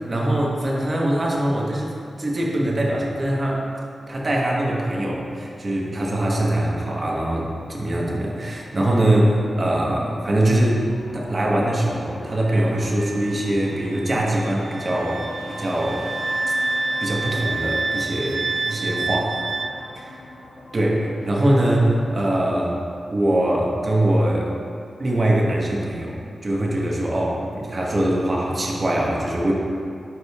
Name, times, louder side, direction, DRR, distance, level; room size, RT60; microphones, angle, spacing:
voice 1, 0.0-3.6 4.1-10.9 11.1-16.1 17.0-19.3 19.9-20.1 20.7-22.8 23.1-24.5 25.0-26.2 26.4-29.5, right 1 dB, 45° right, -3 dB, 1.3 m, -22 dB
sound 1, 9.1-22.7, left 1 dB, 85° left, 1.4 m, -40 dB
Wind instrument woodwind instrument, 12.5-19.7, right 3 dB, 60° right, 0.4 m, -28 dB
12.5 x 5.1 x 2.4 m, 2.5 s
wide cardioid pair, 85°, 0 cm